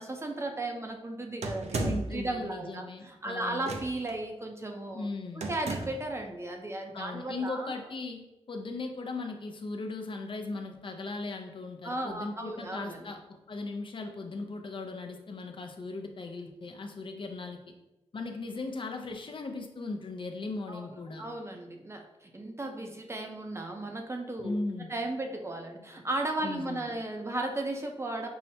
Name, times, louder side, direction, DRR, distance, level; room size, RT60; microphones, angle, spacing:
voice 1, 0.0-5.1 5.3-7.8 11.8-13.1 20.7-20.9 21.2-24.6 24.9-28.3, right 2 dB, 25° right, 3 dB, 0.5 m, -35 dB
sound 1, 1.4-2.2 3.6-4.1 5.4-6.1, right 3 dB, 80° right, 0.4 m, -34 dB
voice 2, 1.8-3.7 4.9-5.5 6.9-17.7 18.1-21.2 24.4-24.9 26.4-26.9, left 3 dB, 50° left, 4 dB, 0.5 m, -38 dB
5.5 x 2.1 x 2.7 m, 0.96 s
wide cardioid pair, 80°, 11 cm